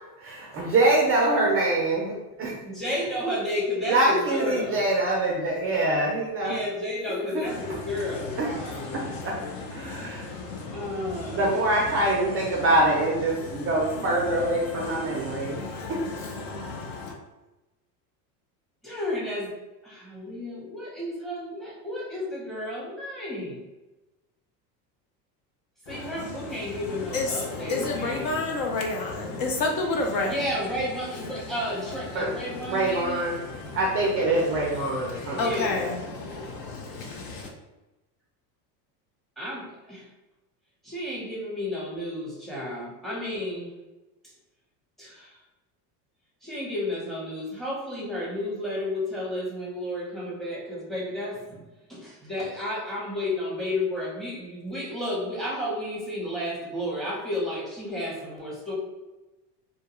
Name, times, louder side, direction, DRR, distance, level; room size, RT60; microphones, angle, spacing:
voice 1, 0.2-2.6 3.8-6.6 8.4-8.5 8.9-9.4 9.7-10.3 11.3-15.6 15.9-16.0 32.1-32.3 32.7-33.4 33.7-35.9, right 2 dB, 30° right, -2 dB, 0.4 m, -24 dB
voice 2, 2.6-4.8 6.4-9.1 10.7-11.5 18.8-19.5 19.8-23.6 25.9-28.4 30.2-33.2 35.3-36.0 39.4-40.1 40.8-43.7 45.0-45.4 46.4-51.6 51.9-58.8, left 1 dB, ahead, -5 dB, 0.7 m, -32 dB
voice 3, 7.4-17.2 25.9-37.5, left 3 dB, 50° left, 2 dB, 0.4 m, -33 dB
2.2 x 2.2 x 2.9 m, 1.1 s
supercardioid pair, 110°, 48 cm